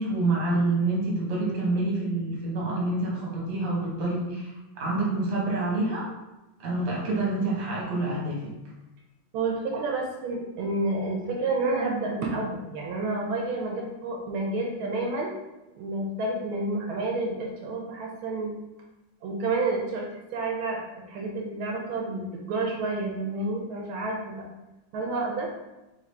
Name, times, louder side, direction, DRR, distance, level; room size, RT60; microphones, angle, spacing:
voice 1, 0.0-6.1 6.6-8.5, right 2 dB, 40° right, -4 dB, 1.1 m, -27 dB
voice 2, 9.3-15.4 15.8-18.5 19.2-24.4 24.9-25.5, right 2 dB, 80° right, 0 dB, 1.4 m, -30 dB
3.7 x 3.4 x 3.3 m, 1.0 s
omnidirectional pair, 2.4 m